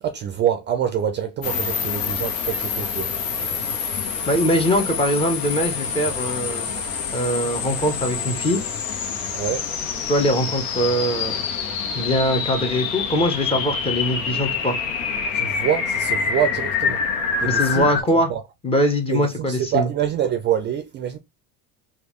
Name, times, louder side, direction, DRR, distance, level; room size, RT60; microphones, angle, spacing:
voice 1, 0.0-3.1 9.3-9.7 15.3-17.0 17.4-17.9 18.3-18.4 19.1-21.2, right 9 dB, 30° right, 0.4 m, -25 dB
sound 1, 1.4-18.0, left 6 dB, 90° left, 0.9 m, -26 dB
voice 2, 4.3-6.7 7.1-8.6 10.1-11.4 11.9-14.8 17.4-18.3 18.6-19.9, equal, 15° left, 0.6 m, -22 dB
3.5 x 2.3 x 3.0 m
cardioid pair, 130°, 38 cm